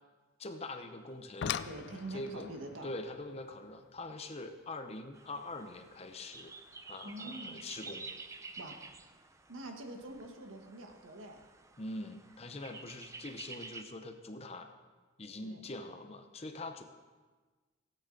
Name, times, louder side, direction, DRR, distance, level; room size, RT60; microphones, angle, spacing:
voice 1, 0.4-1.6 2.1-2.5 2.8-6.5 6.8-8.1 11.8-14.7 15.2-16.8, left 2 dB, 30° left, 7 dB, 0.7 m, -43 dB
sound 1, 1.1-6.1 7.5-7.6 8.2-8.5 8.8-8.9, left 8 dB, 55° left, 0.3 m, -43 dB
voice 2, 1.7-2.9 7.0-7.6 8.6-8.8 9.5-11.4 12.7-12.9 15.4-15.7, right 2 dB, 80° right, 3 dB, 1.4 m, -45 dB
sound 2, 5.1-13.8, right 3 dB, 15° right, 0.4 m, -50 dB
16.5 x 9.0 x 3.9 m, 1.3 s
head